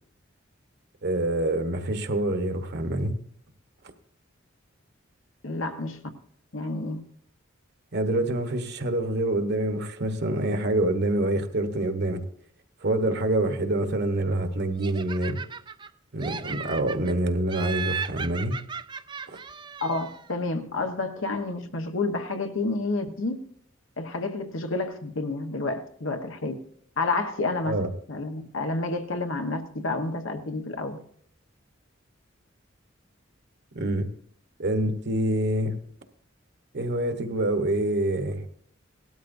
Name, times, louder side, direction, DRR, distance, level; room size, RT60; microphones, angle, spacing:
voice 1, 1.0-3.1 7.9-12.2 12.8-15.4 16.1-18.6 19.3-19.4 27.6-27.9 33.7-34.1 34.6-35.8 36.7-38.4, right 1 dB, 55° right, 1.2 m, -26 dB
voice 2, 5.4-6.0 6.5-7.0 19.8-23.4 24.0-26.5 27.0-27.8 28.1-31.0, left 3 dB, 80° left, 1.2 m, -29 dB
Laughter, 14.8-15.9 16.2-17.1 17.5-20.3, right 6 dB, 25° right, 0.4 m, -36 dB
18.5 x 12.5 x 2.7 m
head